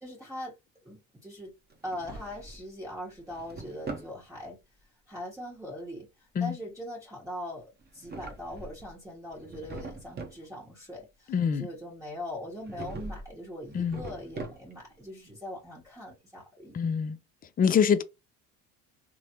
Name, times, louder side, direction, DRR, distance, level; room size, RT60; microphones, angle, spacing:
voice 1, 0.0-0.5 0.8-1.5 1.8-4.6 5.1-16.9, left 1 dB, 10° right, 1.2 m, -41 dB
Drawer open or close, 1.7-2.7 3.1-4.2 7.8-8.9 9.3-10.4 12.6-13.3 13.7-14.9, right 3 dB, 25° right, 0.8 m, -42 dB
voice 2, 11.3-11.7 13.7-14.0 16.7-17.2 17.6-18.0, left 7 dB, 25° left, 0.3 m, -25 dB
3.2 x 2.0 x 2.8 m
hypercardioid pair, 75°, 38 cm